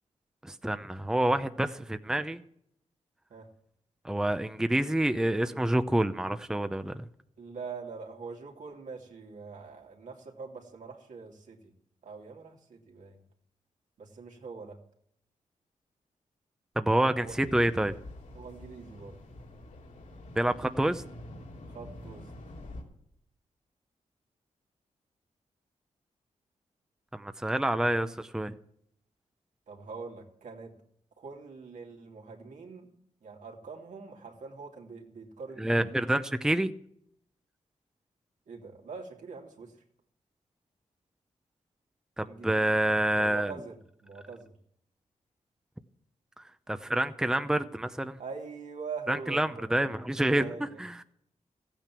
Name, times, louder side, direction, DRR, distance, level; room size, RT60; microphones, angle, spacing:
voice 1, 0.4-2.4 4.0-7.1 16.8-17.9 20.4-21.0 27.1-28.5 35.6-36.7 42.2-43.5 46.4-48.2 49.1-51.0, right 1 dB, 5° right, 10 dB, 0.7 m, -28 dB
voice 2, 7.4-11.7 12.0-13.2 14.0-14.8 17.2-17.5 18.3-19.2 21.7-22.3 29.7-30.7 31.2-32.9 33.2-35.8 38.5-39.7 42.2-42.8 43.1-44.5 48.2-50.0 50.3-50.8, right 5 dB, 75° right, 1 dB, 2.7 m, -44 dB
sound 1, 17.2-22.8, left 1 dB, 80° left, 3.1 m, -46 dB
15.0 x 9.0 x 6.1 m, 0.69 s
cardioid pair, 75°, 13 cm